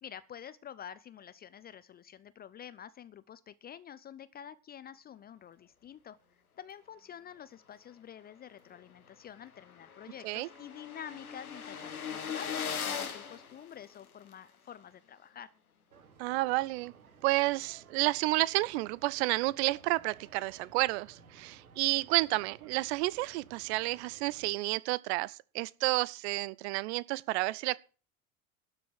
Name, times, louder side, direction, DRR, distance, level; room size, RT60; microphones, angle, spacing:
voice 1, 0.0-6.2 6.6-15.5, left 9 dB, 20° left, 0.6 m, -48 dB
sound 1, 8.8-8.9 9.2-9.3 9.4-14.3, left 7 dB, 80° left, 1.6 m, -39 dB
sound 2, 15.9-24.5, right 5 dB, 75° right, 1.5 m, -58 dB
voice 2, 16.2-16.9 17.2-27.8, right 20 dB, 50° right, 0.6 m, -30 dB
12.5 x 6.9 x 7.5 m
figure-of-eight pair, 70°, 43 cm